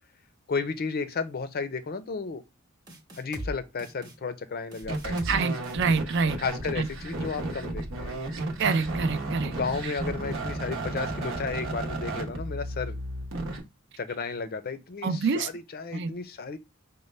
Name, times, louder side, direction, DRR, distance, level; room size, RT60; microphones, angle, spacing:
voice 1, 0.5-2.4 3.2-5.2 6.4-8.2 9.4-13.0 14.0-16.6, left 4 dB, 45° left, 0.5 m, -33 dB
sound 1, 2.9-3.5 3.8-4.1 4.7-5.4 5.6-6.0, equal, 20° right, 0.9 m, -38 dB
sound 2, 4.8-13.6, right 2 dB, 80° right, 0.9 m, -33 dB
voice 2, 5.3-6.4 6.8-6.9 8.6-9.5 15.0-15.5 15.9-16.2, right 5 dB, 55° right, 0.4 m, -26 dB
5.3 x 2.2 x 3.2 m
head